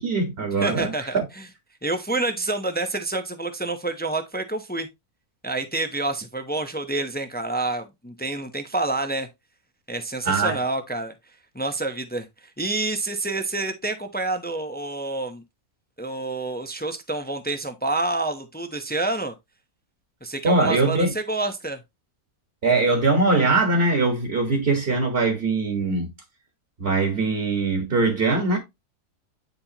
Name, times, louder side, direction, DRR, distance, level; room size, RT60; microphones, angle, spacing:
voice 1, 0.0-1.2 10.2-10.6 20.4-21.1 22.6-26.1 26.8-28.6, right 3 dB, 45° right, 1.8 m, -22 dB
voice 2, 0.5-1.5 1.8-4.9 5.4-9.3 9.9-11.1 11.5-15.4 16.0-19.3 20.2-21.8, right 2 dB, 10° left, 0.6 m, -28 dB
9.4 x 4.3 x 2.9 m
omnidirectional pair, 1.5 m